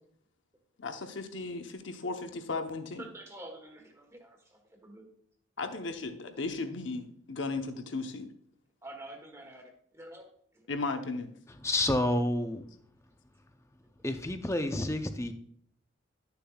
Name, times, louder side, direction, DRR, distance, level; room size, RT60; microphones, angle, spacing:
voice 1, 0.8-3.0 5.6-8.3 10.7-11.3, left 3 dB, 70° left, 0.9 m, -36 dB
voice 2, 3.0-5.1 8.8-10.3, right 1 dB, 15° right, 1.2 m, -47 dB
voice 3, 11.6-12.6 14.0-15.3, left 1 dB, 15° left, 0.6 m, -29 dB
11.0 x 6.8 x 2.3 m
head